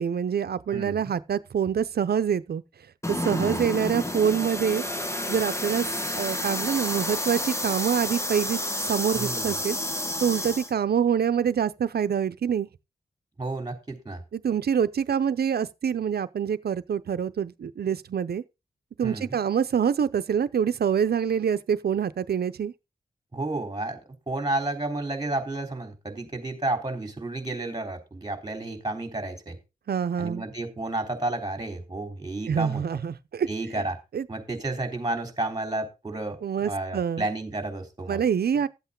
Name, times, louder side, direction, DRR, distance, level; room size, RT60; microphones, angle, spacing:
voice 1, 0.0-2.6 3.1-4.8 5.3-5.9 6.1-9.8 10.2-12.7 14.3-18.4 19.0-22.7 29.9-30.4 32.5-33.5 34.1-34.3 36.4-37.3 38.1-38.7, right 8 dB, 85° right, 0.7 m, -26 dB
voice 2, 0.7-1.1 3.3-3.6 9.1-9.6 13.4-14.2 19.0-19.4 23.3-24.0 24.3-29.6 30.2-32.8 33.5-33.9 34.3-38.2, right 2 dB, 25° right, 3.7 m, -31 dB
sound 1, 3.0-10.7, left 1 dB, 15° left, 1.4 m, -30 dB
13.5 x 8.2 x 3.8 m
cardioid pair, 65°, 16 cm